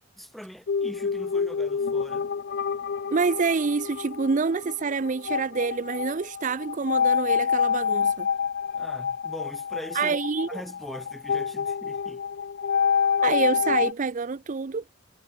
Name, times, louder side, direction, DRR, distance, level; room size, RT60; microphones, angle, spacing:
voice 1, 0.2-2.3 8.7-10.2 10.5-12.2, equal, ahead, 1.9 m, -41 dB
sound 1, 0.7-13.9, left 6 dB, 55° left, 0.5 m, -27 dB
voice 2, 3.1-8.3 9.9-10.5 13.2-14.8, right 4 dB, 40° right, 0.5 m, -27 dB
head